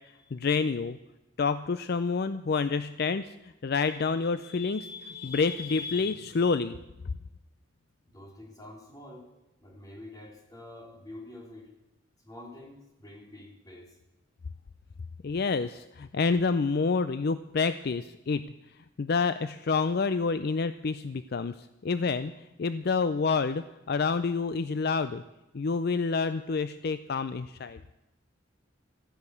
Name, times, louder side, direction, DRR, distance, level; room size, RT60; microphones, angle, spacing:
voice 1, 0.3-1.0 1.4-6.8 15.2-18.5 18.8-22.3 22.6-25.2 25.5-27.8, left 4 dB, 50° left, 12 dB, 0.4 m, -28 dB
voice 2, 8.1-9.2 9.6-11.7 12.2-14.0, left 1 dB, 20° left, 0 dB, 3.2 m, -47 dB
14.0 x 10.5 x 8.3 m, 0.98 s
head